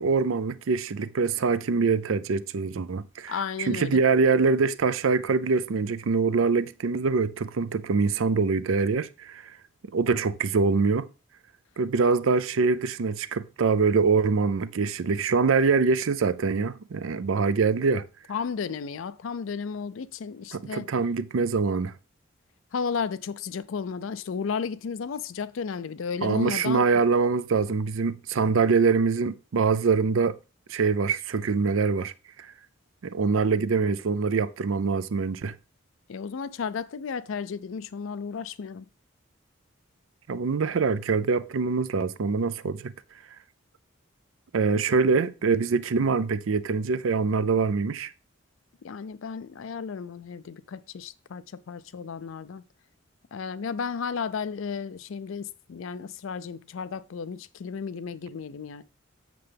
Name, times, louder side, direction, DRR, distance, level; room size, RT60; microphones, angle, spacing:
voice 1, 0.0-9.5 9.9-11.1 11.8-18.0 20.5-21.9 26.2-30.4 30.7-32.1 33.0-35.6 40.3-42.9 44.5-48.1, right 4 dB, 80° right, 0.5 m, -24 dB
voice 2, 3.3-4.0 18.3-20.9 22.7-26.9 36.1-38.9 48.8-52.6 53.3-58.8, left 6 dB, 75° left, 0.4 m, -33 dB
7.7 x 6.6 x 3.4 m
head